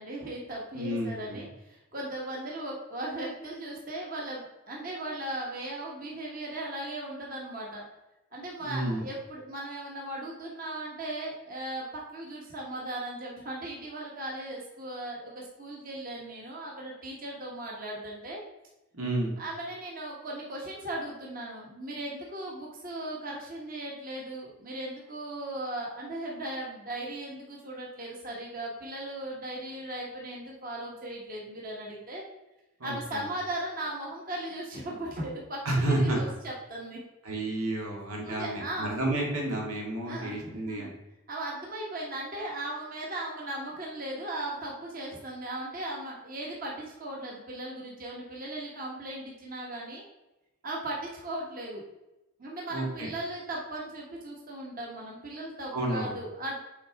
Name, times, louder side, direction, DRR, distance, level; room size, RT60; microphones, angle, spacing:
voice 1, 0.0-7.8 8.3-18.4 19.4-32.2 32.8-35.6 36.0-37.0 38.2-38.9 40.1-40.9 41.3-50.0 50.6-51.8 52.4-56.5, right 1 dB, 40° right, -3 dB, 1.3 m, -37 dB
voice 2, 0.7-1.5 8.6-9.1 18.9-19.4 32.8-33.3 35.6-36.2 37.2-40.9 52.7-53.1 55.7-56.2, right 1 dB, 85° right, -1 dB, 1.9 m, -31 dB
7.7 x 4.5 x 3.5 m, 0.97 s
head